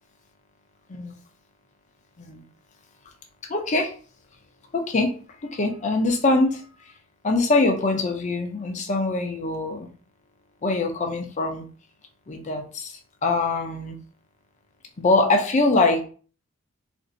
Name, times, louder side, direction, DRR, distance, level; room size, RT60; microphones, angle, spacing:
voice 1, 3.5-3.9 4.7-5.1 5.4-6.9 7.2-9.9 10.6-11.7 12.3-14.0 15.0-16.0, left 2 dB, 35° left, 3 dB, 0.5 m, -23 dB
2.6 x 2.5 x 3.9 m, 0.40 s
head